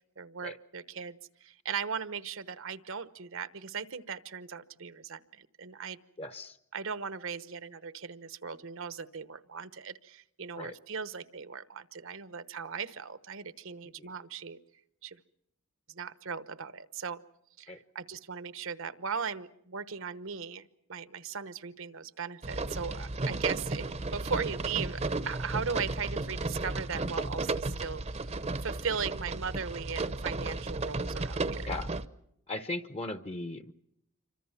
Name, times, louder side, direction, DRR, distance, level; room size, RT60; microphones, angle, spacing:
voice 1, 0.2-6.0 6.7-14.6 15.0-15.2 15.9-17.2 17.6-28.2 28.6-31.7, right 6 dB, 65° right, 14 dB, 1.0 m, -38 dB
voice 2, 6.2-6.6 10.6-10.7 14.0-14.1 17.7-17.8 31.6-31.9 32.5-33.7, left 2 dB, 30° left, 10 dB, 0.9 m, -38 dB
sound 1, 22.4-32.1, right 2 dB, 30° right, 0.8 m, -34 dB
27.5 x 25.0 x 5.8 m, 0.77 s
head